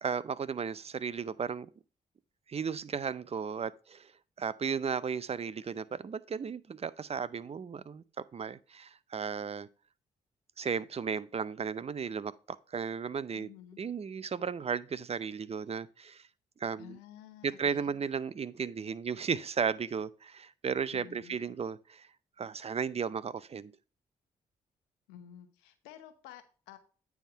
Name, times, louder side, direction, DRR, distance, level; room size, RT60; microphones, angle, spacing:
voice 1, 0.0-1.7 2.5-4.1 4.4-9.7 10.6-13.5 13.8-16.3 16.6-17.0 17.4-22.1 22.4-23.7, right 6 dB, 35° right, 0.6 m, -35 dB
voice 2, 13.3-13.8 16.8-18.0 20.9-21.4 25.1-26.8, left 11 dB, 85° left, 1.0 m, -51 dB
9.1 x 3.5 x 5.5 m
hypercardioid pair, 45°, 17 cm